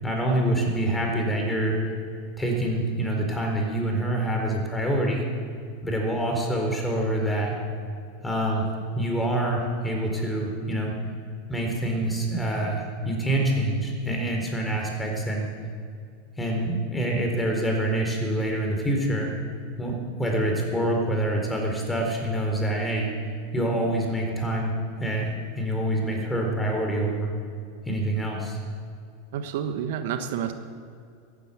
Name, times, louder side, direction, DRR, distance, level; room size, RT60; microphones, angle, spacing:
voice 1, 0.0-1.8 2.4-5.3 5.8-7.5 8.2-8.6 8.9-10.9 11.5-15.5 16.4-19.3 19.8-23.1 23.5-24.7 25.0-27.3 27.9-28.6, right 1 dB, 10° left, 1 dB, 4.4 m, -26 dB
voice 2, 29.3-30.5, right 8 dB, 65° right, 7 dB, 1.3 m, -29 dB
15.5 x 10.0 x 8.7 m, 2.3 s
hypercardioid pair, 110°, 0 cm